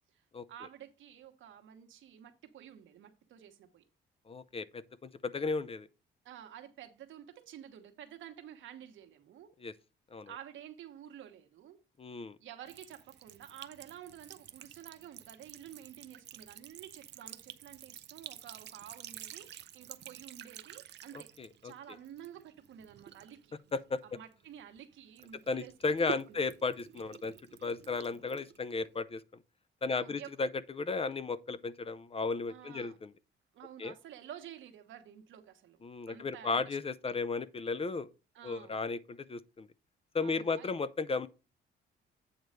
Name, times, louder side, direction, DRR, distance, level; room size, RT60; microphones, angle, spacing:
voice 1, 0.5-3.8 6.2-9.5 10.3-11.8 12.4-21.3 21.6-23.6 24.0-26.4 29.9-30.3 32.5-33.0 33.5-35.8 36.1-36.8 37.1-37.2 38.3-38.8 40.2-40.7, right 10 dB, 75° right, 1.3 m, -51 dB
voice 2, 4.3-5.9 9.6-9.7 10.1-10.3 12.0-12.4 21.1-21.7 23.7-24.0 25.5-27.3 27.6-29.2 29.8-33.1 33.8-33.9 35.8-38.1 38.4-39.7 40.1-41.3, left 4 dB, 30° left, 0.6 m, -35 dB
Sink (filling or washing) / Trickle dribble, 12.7-24.8 25.2-29.0, right 10 dB, 60° right, 0.6 m, -49 dB
8.7 x 3.1 x 6.5 m
cardioid pair, 90°, 20 cm